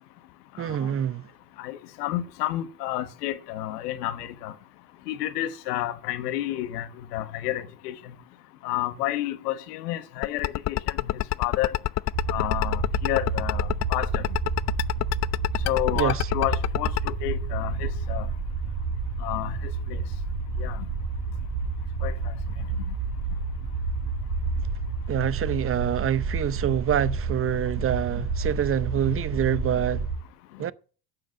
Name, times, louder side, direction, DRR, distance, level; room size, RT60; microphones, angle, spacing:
voice 1, 0.6-1.3 16.0-16.3 25.1-30.1 30.6-30.7, right 10 dB, 30° right, 0.7 m, -26 dB
voice 2, 1.6-4.5 5.1-6.9 7.1-7.9 8.6-11.7 12.3-14.2 15.6-18.3 19.2-20.0 20.6-20.8 22.0-22.1, left 14 dB, 75° left, 1.5 m, -30 dB
sound 1, 10.2-17.1, left 15 dB, 35° left, 0.5 m, -25 dB
sound 2, 12.1-30.2, right 4 dB, 70° right, 3.4 m, -30 dB
11.5 x 7.5 x 7.4 m
hypercardioid pair, 80°, 47 cm